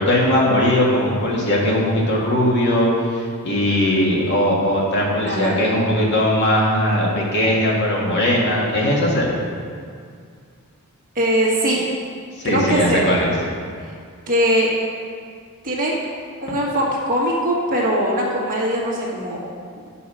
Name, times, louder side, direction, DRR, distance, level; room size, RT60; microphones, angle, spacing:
voice 1, 0.0-9.3 12.4-13.3, left 1 dB, 50° left, -3 dB, 1.9 m, -19 dB
voice 2, 5.3-5.6 11.2-11.8 12.4-13.1 14.3-14.7 15.6-15.9 16.4-19.4, equal, 40° right, -4 dB, 1.8 m, -21 dB
9.5 x 5.9 x 5.5 m, 2.2 s
head